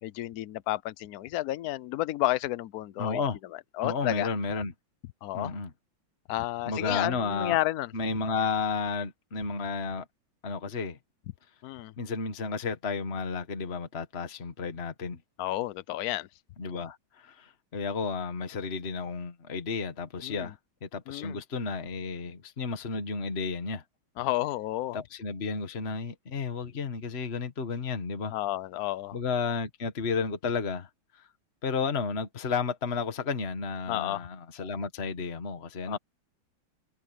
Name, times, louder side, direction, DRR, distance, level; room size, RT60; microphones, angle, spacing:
voice 1, 0.0-3.2 3.8-4.3 5.2-5.5 6.3-7.9 11.6-11.9 15.4-16.3 20.2-20.5 21.1-21.4 24.2-25.0 28.3-29.2 33.9-34.2 35.9-36.0, left 15 dB, 70° left, 0.9 m, -31 dB
voice 2, 3.0-3.4 3.8-4.7 5.3-5.7 6.6-7.6 7.9-10.1 10.4-11.0 12.0-15.2 16.6-20.6 20.8-23.8 24.9-28.3 29.1-31.2 31.6-36.0, left 5 dB, 35° left, 1.7 m, -32 dB
omnidirectional pair, 2.2 m